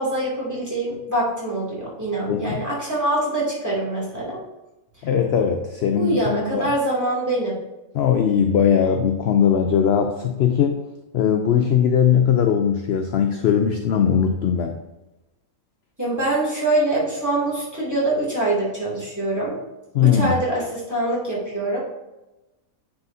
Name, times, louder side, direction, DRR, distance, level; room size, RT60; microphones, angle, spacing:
voice 1, 0.0-4.4 5.9-7.5 16.0-19.5 20.0-21.8, right 1 dB, 10° right, -7 dB, 2.4 m, -24 dB
voice 2, 2.3-2.7 5.0-6.7 7.9-10.8 11.1-14.8 19.9-20.4, left 8 dB, 65° left, 5 dB, 0.6 m, -19 dB
9.4 x 4.9 x 2.7 m, 0.99 s
omnidirectional pair, 1.5 m